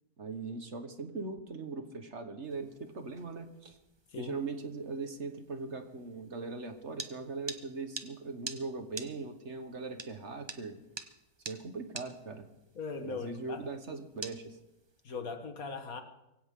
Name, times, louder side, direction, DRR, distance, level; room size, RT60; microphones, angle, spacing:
voice 1, 0.2-3.8 4.2-10.8 11.5-12.5 13.0-14.6, right 3 dB, 50° right, 7 dB, 1.5 m, -40 dB
sound 1, 2.4-15.1, right 3 dB, 20° right, 0.8 m, -49 dB
voice 2, 12.8-13.6 15.0-16.0, left 4 dB, 65° left, 6 dB, 1.8 m, -39 dB
23.0 x 16.5 x 3.7 m, 0.93 s
omnidirectional pair, 1.7 m